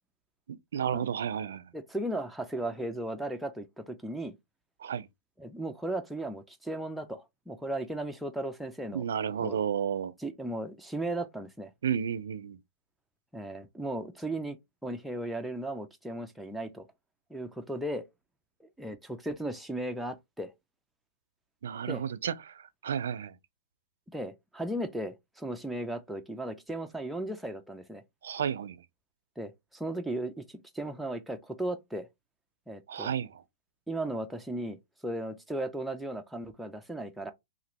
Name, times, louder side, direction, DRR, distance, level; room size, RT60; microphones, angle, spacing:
voice 1, 0.5-1.6 4.8-5.1 8.9-10.1 11.8-12.6 21.6-23.3 28.2-28.8 32.9-33.4, right 8 dB, 80° right, 0.4 m, -32 dB
voice 2, 1.7-4.4 5.4-9.0 9.4-9.6 10.2-11.7 13.3-14.6 14.8-16.8 17.3-18.0 18.8-20.5 21.9-22.0 24.1-28.0 29.4-32.1 32.7-33.1 33.9-34.8 35.0-37.3, right 1 dB, ahead, 0.4 m, -36 dB
2.9 x 2.5 x 2.8 m
hypercardioid pair, 140°, 0 cm